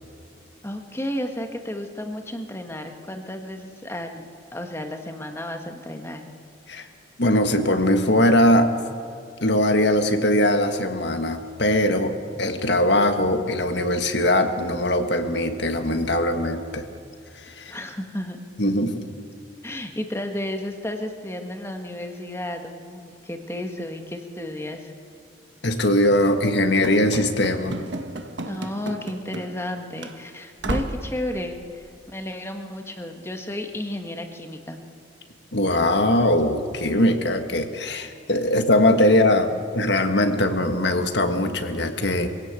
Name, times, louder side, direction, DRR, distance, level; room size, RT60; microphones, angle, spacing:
voice 1, 0.6-6.3 17.7-18.4 19.6-24.9 28.4-34.8, left 1 dB, 15° left, 5 dB, 1.6 m, -33 dB
voice 2, 7.2-8.7 9.4-12.1 12.4-16.8 17.4-17.7 18.6-19.0 25.6-27.7 35.5-42.3, left 1 dB, 60° left, 6 dB, 1.7 m, -21 dB
Run / Slam, 26.8-29.7 30.0-30.1 30.6-31.1, right 1 dB, 65° right, 1.4 m, -32 dB
23.5 x 17.0 x 8.3 m, 2.3 s
head